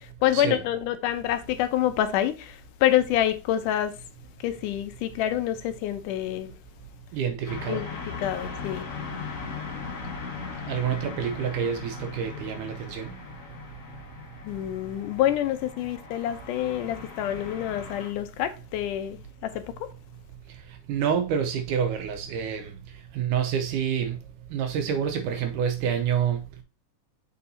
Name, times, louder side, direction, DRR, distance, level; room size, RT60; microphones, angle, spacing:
voice 1, 0.0-3.9 4.4-6.5 7.7-7.9 8.2-8.9 14.4-19.6, left 12 dB, 85° left, 2.1 m, -27 dB
voice 2, 7.1-7.8 10.7-13.1 20.9-22.7 23.1-24.2 24.5-26.4, right 8 dB, 75° right, 2.1 m, -27 dB
sound 1, 7.4-18.1, left 5 dB, 65° left, 0.7 m, -39 dB
6.7 x 5.6 x 2.7 m
omnidirectional pair, 3.8 m